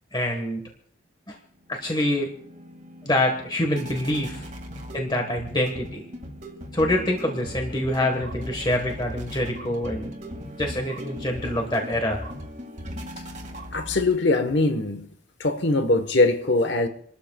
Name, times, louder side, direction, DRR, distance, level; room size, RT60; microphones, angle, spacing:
voice 1, 0.1-0.6 1.3-1.4 1.7-2.3 3.0-4.5 4.9-6.0 6.7-10.1 10.6-12.2, left 1 dB, 20° left, 1.3 m, -25 dB
sound 1, 1.6-14.5, equal, 35° right, 2.0 m, -38 dB
voice 2, 13.7-15.1 15.4-16.9, left 2 dB, 60° left, 1.1 m, -22 dB
28.5 x 13.0 x 2.3 m
head